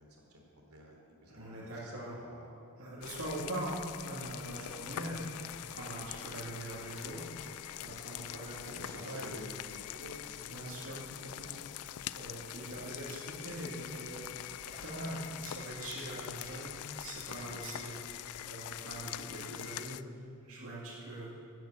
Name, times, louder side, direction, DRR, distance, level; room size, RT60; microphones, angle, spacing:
voice 1, 0.0-2.5 3.4-3.7 5.0-5.1 7.8-8.3 8.7-9.4 9.7-10.4 17.4-17.6, right 1 dB, 85° right, -1 dB, 2.9 m, -53 dB
voice 2, 1.3-2.2 2.8-9.4 10.4-16.7 17.0-20.0 20.4-21.3, right 1 dB, 70° right, -8 dB, 2.3 m, -42 dB
sound 1, 3.0-20.0, left 12 dB, 85° left, 0.3 m, -44 dB
11.5 x 7.8 x 8.1 m, 2.4 s
head